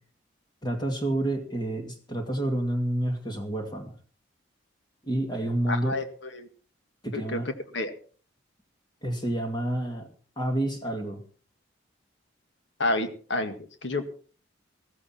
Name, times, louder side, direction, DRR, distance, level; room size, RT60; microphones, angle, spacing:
voice 1, 0.6-4.0 5.0-5.9 7.0-7.5 9.0-10.1 10.4-11.2, right 1 dB, 20° left, 3 dB, 2.3 m, -29 dB
voice 2, 5.7-6.5 7.1-7.4 7.7-7.9 12.8-14.0, left 2 dB, 65° left, 7 dB, 2.0 m, -29 dB
15.0 x 15.0 x 4.4 m, 0.41 s
head